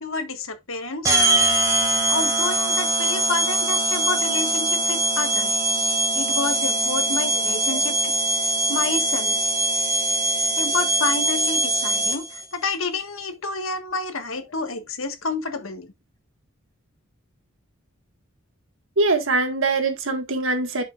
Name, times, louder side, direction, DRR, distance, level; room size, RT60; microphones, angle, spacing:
voice 1, 0.0-1.2 2.1-5.5 6.1-8.1 8.7-9.4 10.6-15.9, left 3 dB, 70° left, 1.6 m, -29 dB
sound 1, 1.0-12.4, right 1 dB, 15° right, 2.1 m, -22 dB
voice 2, 19.0-20.8, right 3 dB, 65° right, 1.7 m, -23 dB
10.5 x 5.5 x 2.5 m
head